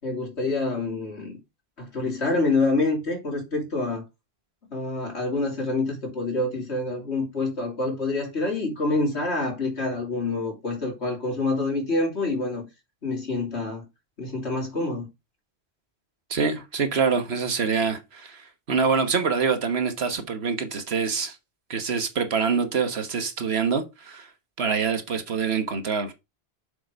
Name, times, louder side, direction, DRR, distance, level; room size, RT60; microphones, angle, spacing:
voice 1, 0.0-1.4 1.8-4.0 4.7-12.7 13.0-13.8 14.2-15.1, left 3 dB, 80° left, 3.4 m, -27 dB
voice 2, 16.3-21.3 21.7-24.3 24.6-26.1, right 5 dB, 70° right, 1.5 m, -25 dB
7.0 x 4.9 x 5.2 m
omnidirectional pair, 1.1 m